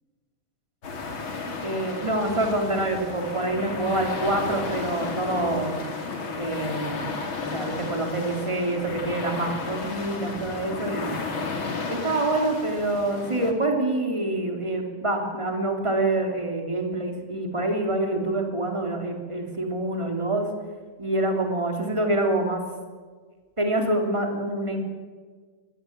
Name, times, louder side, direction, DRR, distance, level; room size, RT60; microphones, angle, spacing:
sound 1, 0.8-13.5, left 4 dB, 35° left, 3.0 m, -33 dB
voice 1, 1.6-5.8 6.3-7.0 7.4-11.2 11.9-20.5 21.0-22.6 23.6-24.8, right 2 dB, 10° right, 2 dB, 2.9 m, -26 dB
23.5 x 19.0 x 9.0 m, 1.5 s
omnidirectional pair, 4.6 m